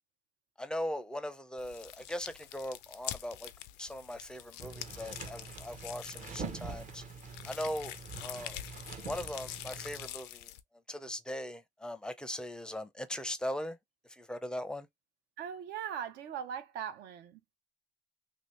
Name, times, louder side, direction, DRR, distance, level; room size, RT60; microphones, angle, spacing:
voice 1, 0.6-3.5 3.8-7.0 7.4-8.6 9.1-10.5 10.9-13.8 14.1-14.9, left 1 dB, 5° left, 0.5 m, -39 dB
sound 1, 1.6-10.6, left 13 dB, 90° left, 0.4 m, -46 dB
sound 2, 4.6-10.1, right 5 dB, 45° right, 0.8 m, -45 dB
voice 2, 15.4-17.4, right 8 dB, 80° right, 0.8 m, -40 dB
2.8 x 2.8 x 3.1 m
cardioid pair, 110°, 17 cm